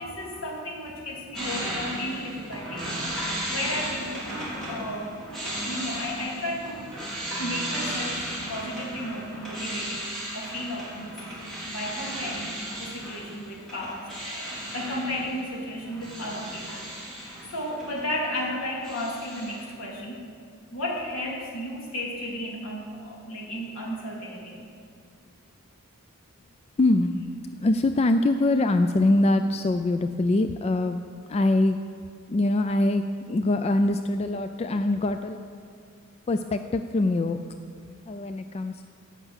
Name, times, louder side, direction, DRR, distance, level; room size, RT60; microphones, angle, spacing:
voice 1, 0.0-2.9 3.5-5.2 5.5-6.8 7.4-10.0 10.3-11.4 11.7-16.8 17.5-20.2 20.7-24.6, left 1 dB, 75° left, -3 dB, 3.0 m, -34 dB
sound 1, 1.3-18.5 18.8-19.6, right 1 dB, ahead, 4.0 m, -35 dB
voice 2, 26.8-27.3 27.6-31.0 31.3-31.8 32.3-35.5 36.3-37.4 38.1-38.9, left 2 dB, 30° left, 8 dB, 0.3 m, -23 dB
17.5 x 5.9 x 7.3 m, 2.3 s
head